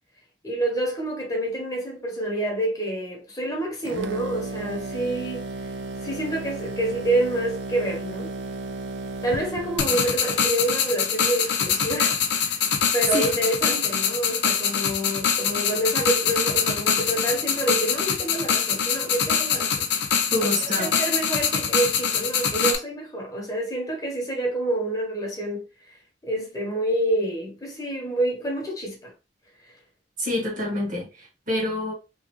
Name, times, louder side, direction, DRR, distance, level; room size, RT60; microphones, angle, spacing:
voice 1, 0.4-5.4 6.0-8.4 9.2-12.6 12.9-19.9 20.6-25.6 26.2-29.1, right 1 dB, 20° left, 1.0 m, -28 dB
sound 1, 3.8-10.1, right 2 dB, 85° right, 0.4 m, -34 dB
sound 2, 9.8-22.8, left 7 dB, 75° left, 0.6 m, -24 dB
voice 2, 20.3-21.0 30.2-31.9, left 1 dB, 50° right, 1.3 m, -27 dB
3.0 x 2.4 x 3.0 m
head